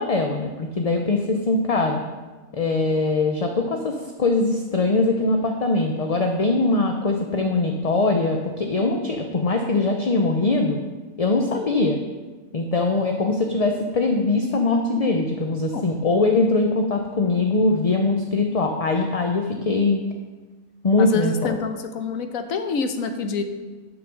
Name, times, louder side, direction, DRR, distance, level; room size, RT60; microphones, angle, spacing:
voice 1, 0.0-2.0 2.5-10.8 11.2-12.0 12.5-20.0 20.8-21.6, left 3 dB, 35° left, 3 dB, 0.7 m, -22 dB
voice 2, 21.0-23.4, left 5 dB, 80° left, 7 dB, 1.3 m, -26 dB
11.0 x 6.1 x 6.4 m, 1.3 s
omnidirectional pair, 1.4 m